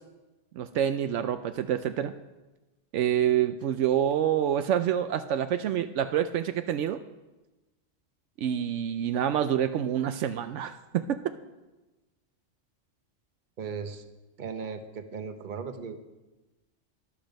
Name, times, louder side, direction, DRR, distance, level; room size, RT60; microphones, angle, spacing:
voice 1, 0.6-2.1 2.9-7.0 8.4-11.2, right 10 dB, 75° right, 10 dB, 0.9 m, -27 dB
voice 2, 13.6-14.0 14.4-16.0, right 5 dB, 45° right, 9 dB, 0.9 m, -37 dB
13.5 x 11.0 x 5.2 m, 1.1 s
omnidirectional pair, 1.3 m